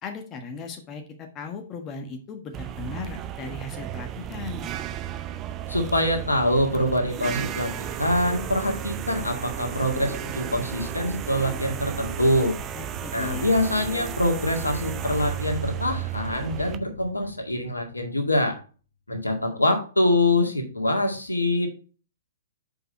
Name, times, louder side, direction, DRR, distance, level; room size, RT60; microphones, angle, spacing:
voice 1, 0.0-4.7 12.7-13.5, left 4 dB, 25° left, 4 dB, 1.3 m, -37 dB
sound 1, 2.5-16.8, right 11 dB, 25° right, 0.6 m, -34 dB
voice 2, 5.7-12.5 13.1-18.6 19.1-21.7, left 1 dB, 80° left, 4 dB, 1.9 m, -24 dB
sound 2, 9.7-18.3, left 4 dB, 45° left, 1.6 m, -43 dB
7.0 x 5.4 x 4.2 m, 0.37 s
figure-of-eight pair, 115°, 0 cm